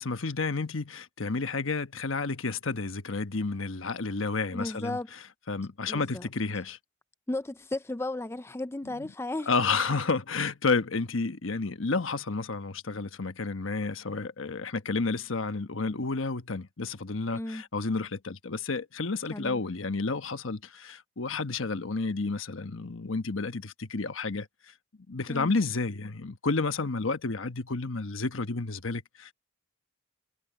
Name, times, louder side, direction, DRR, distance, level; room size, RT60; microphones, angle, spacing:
voice 1, 0.0-5.0 5.5-6.8 8.9-9.0 9.5-24.7 25.1-29.3, left 3 dB, 80° left, 1.2 m, -31 dB
voice 2, 4.5-5.1 5.9-6.3 7.3-9.5 17.3-17.6 19.3-19.6 25.3-25.5, left 2 dB, 10° left, 0.4 m, -34 dB
head